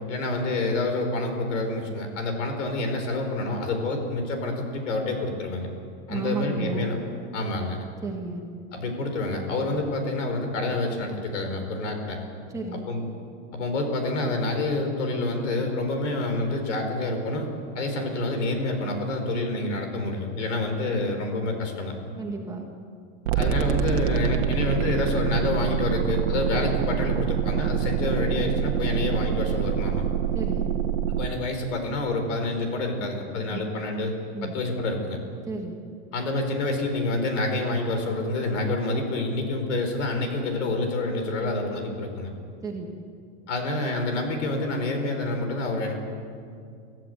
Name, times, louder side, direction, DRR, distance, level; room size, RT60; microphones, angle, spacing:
voice 1, 0.1-5.7 6.1-7.0 7.3-7.8 8.7-12.2 12.9-13.0 13.5-17.5 17.7-22.0 23.3-30.1 31.1-34.1 34.4-35.2 36.1-42.3 43.5-45.9, left 2 dB, 85° left, 5 dB, 5.2 m, -28 dB
voice 2, 6.1-6.9 8.0-8.4 12.5-12.8 22.2-22.6 30.3-30.7 33.5-33.6 34.3-34.5 35.5-35.8 42.6-42.9, right 4 dB, 10° right, 0 dB, 1.5 m, -32 dB
sound 1, 23.3-31.3, right 9 dB, 65° right, 1.6 m, -26 dB
25.0 x 15.0 x 8.2 m, 2.3 s
supercardioid pair, 180°, 36 cm